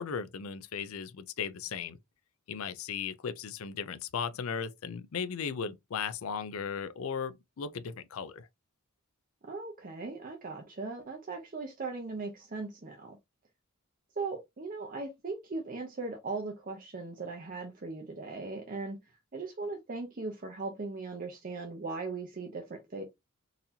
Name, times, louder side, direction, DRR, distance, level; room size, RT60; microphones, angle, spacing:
voice 1, 0.0-2.0 2.5-8.5, left 6 dB, 80° left, 0.5 m, -36 dB
voice 2, 9.4-13.2 14.2-19.0 19.3-23.0, right 3 dB, 40° right, 0.7 m, -38 dB
4.0 x 2.7 x 2.7 m
head